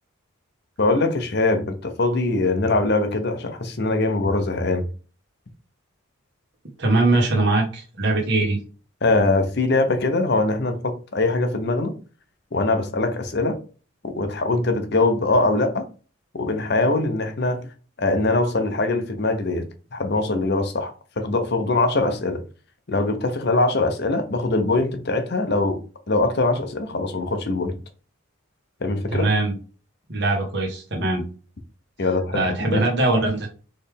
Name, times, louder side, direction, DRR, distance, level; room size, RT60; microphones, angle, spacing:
voice 1, 0.8-4.8 9.0-11.9 12.5-13.6 14.2-15.8 16.3-17.7 18.0-19.7 19.9-22.4 22.9-25.8 26.1-27.8 28.8-29.3 32.0-32.8, left 2 dB, 50° left, 0.7 m, -22 dB
voice 2, 6.8-8.6 29.1-29.5 30.1-31.2 32.3-33.5, right 2 dB, 55° right, 1.2 m, -21 dB
4.3 x 3.3 x 3.4 m
head